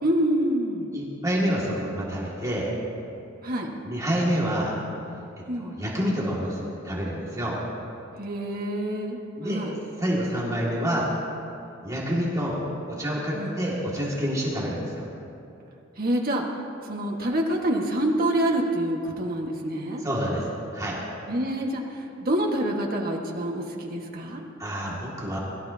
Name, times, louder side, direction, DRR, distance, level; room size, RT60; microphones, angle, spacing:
voice 1, 0.0-0.9 3.4-3.7 5.5-5.8 8.2-9.2 9.4-9.7 13.3-13.6 16.0-16.4 16.9-20.0 21.3-24.4, right 1 dB, 50° right, 0 dB, 1.6 m, -26 dB
voice 2, 0.9-2.7 3.8-4.7 5.6-7.6 9.4-9.6 10.0-11.1 11.8-12.6 12.9-15.0 20.0-21.0 24.6-25.4, equal, 15° right, -6 dB, 2.1 m, -27 dB
22.0 x 13.0 x 2.8 m, 2.7 s
head